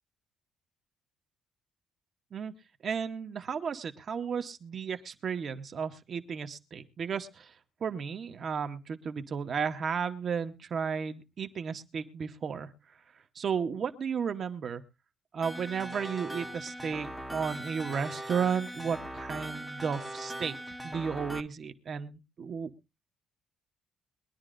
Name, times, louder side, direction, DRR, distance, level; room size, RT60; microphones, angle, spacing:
voice 1, 2.8-7.5 7.8-12.7 13.4-14.8 15.3-22.7, right 6 dB, 35° right, 8 dB, 0.9 m, -34 dB
sound 1, 15.4-21.4, right 1 dB, ahead, 0.8 m, -40 dB
22.0 x 11.0 x 2.5 m, 0.27 s
cardioid pair, 175°, 0 cm